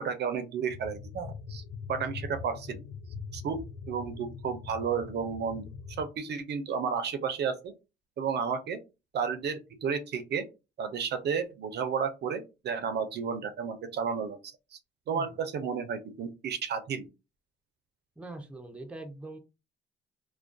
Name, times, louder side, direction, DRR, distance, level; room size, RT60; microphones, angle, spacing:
voice 1, 0.0-1.6 1.9-2.8 3.3-3.6 3.9-5.7 6.0-7.7 8.2-8.8 9.1-10.5 10.8-14.4 14.7-14.8 15.1-17.1, right 6 dB, 60° right, 9 dB, 0.5 m, -32 dB
sound 1, 0.7-6.1, left 5 dB, 85° left, 0.5 m, -42 dB
voice 2, 18.2-19.4, right 2 dB, 5° right, 4 dB, 0.5 m, -42 dB
2.3 x 2.2 x 2.5 m, 0.28 s
cardioid pair, 90°, 20 cm